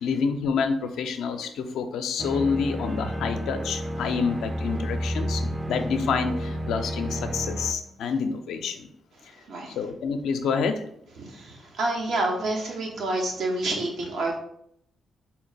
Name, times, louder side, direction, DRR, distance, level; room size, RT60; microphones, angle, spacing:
voice 1, 0.0-8.9 9.8-10.8, left 5 dB, 80° left, 7 dB, 0.4 m, -28 dB
sound 1, 2.2-7.7, equal, 20° right, 0.5 m, -31 dB
voice 2, 9.2-9.8 11.2-14.4, right 2 dB, 70° right, 1 dB, 0.9 m, -28 dB
4.1 x 2.2 x 4.0 m, 0.70 s
supercardioid pair, 55°, 0 cm